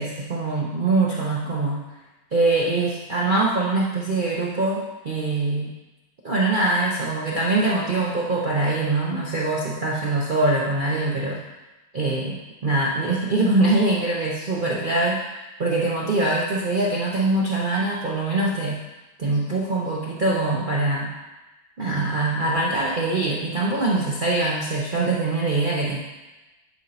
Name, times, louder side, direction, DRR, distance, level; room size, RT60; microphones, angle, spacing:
voice 1, 0.0-1.8 2.3-5.7 6.2-11.4 11.9-15.2 15.6-18.8 19.2-21.1 21.8-26.0, right 2 dB, 50° right, -3 dB, 0.6 m, -23 dB
10.5 x 4.4 x 4.0 m, 1.1 s
omnidirectional pair, 1.8 m